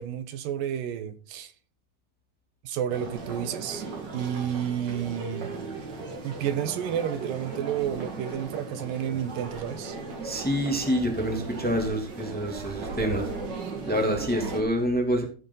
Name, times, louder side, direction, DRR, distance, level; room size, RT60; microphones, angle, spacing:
voice 1, 0.0-1.5 2.6-3.8 4.1-5.6 6.2-10.0, right 9 dB, 70° right, 2.3 m, -31 dB
sound 1, 2.9-14.6, right 3 dB, 40° right, 1.7 m, -37 dB
voice 2, 10.2-13.3 13.8-15.2, equal, 5° left, 1.6 m, -27 dB
15.5 x 7.0 x 3.9 m
omnidirectional pair, 4.7 m